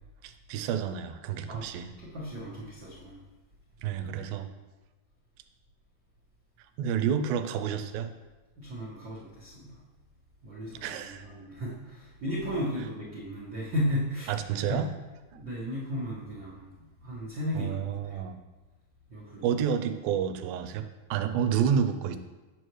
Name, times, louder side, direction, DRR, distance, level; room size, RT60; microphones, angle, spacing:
voice 1, 0.2-1.9 3.8-4.5 6.8-8.1 10.8-11.2 14.3-14.9 17.5-18.4 19.4-20.9 21.1-22.2, right 8 dB, 85° right, 8 dB, 2.3 m, -29 dB
voice 2, 2.0-3.2 8.6-9.7 10.4-14.3 14.7-14.9 15.3-16.6 17.0-18.2 19.1-19.5, equal, 60° right, -8 dB, 1.2 m, -35 dB
9.1 x 6.4 x 3.1 m, 1.2 s
omnidirectional pair, 4.1 m